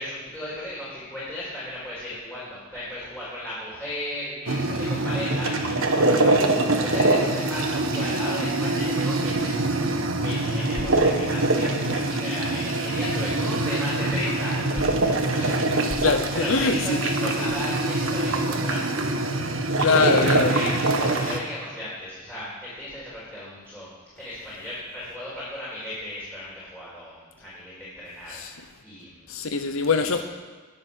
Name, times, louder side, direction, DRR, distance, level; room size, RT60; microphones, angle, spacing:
voice 1, 0.0-19.6 19.9-23.9 24.2-29.2 29.8-30.2, left 1 dB, 5° left, 4.5 m, -35 dB
sound 1, 4.5-21.4, right 2 dB, 75° right, 1.5 m, -24 dB
voice 2, 15.8-17.0 19.8-20.5 28.3-28.5 29.3-30.2, left 4 dB, 75° left, 0.8 m, -23 dB
21.0 x 7.9 x 6.2 m
head